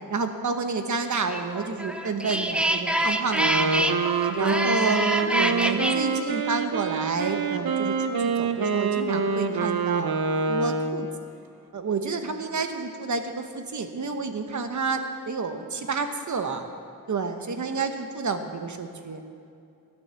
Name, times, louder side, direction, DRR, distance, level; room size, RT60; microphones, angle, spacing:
voice 1, 0.1-3.9 4.3-5.0 5.4-11.1 11.7-16.6 17.1-19.2, right 4 dB, 55° right, 7 dB, 1.1 m, -30 dB
sound 1, 1.3-6.0, right 1 dB, 5° right, 0.5 m, -26 dB
Wind instrument woodwind instrument, 3.3-11.2, right 4 dB, 80° right, 0.9 m, -26 dB
16.0 x 9.5 x 7.0 m, 2.5 s
wide cardioid pair, 175°, 36 cm